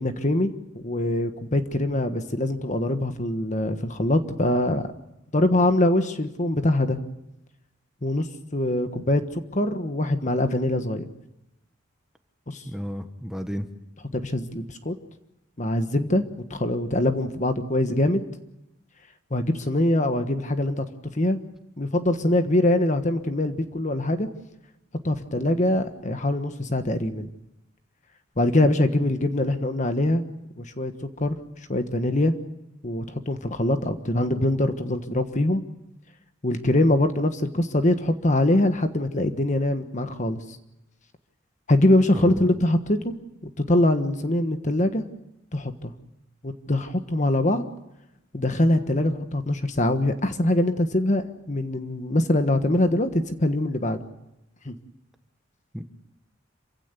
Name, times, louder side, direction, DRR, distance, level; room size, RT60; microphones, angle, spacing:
voice 1, 0.0-4.8 5.3-7.0 8.0-8.2 8.5-11.1 12.5-12.6 14.1-15.0 15.6-16.2 16.5-18.2 19.3-20.8 21.1-21.4 21.8-24.3 25.0-27.3 28.4-30.2 30.6-31.4 31.7-32.3 32.8-35.6 36.4-40.4 41.7-43.1 43.4-45.0 45.5-45.9 46.4-47.6 48.3-54.0 54.6-54.7, left 1 dB, 40° left, 8 dB, 1.4 m, -23 dB
voice 2, 12.6-13.7 42.1-42.5 55.7-55.8, equal, 5° right, 6 dB, 1.3 m, -32 dB
27.5 x 16.0 x 8.2 m, 0.90 s
head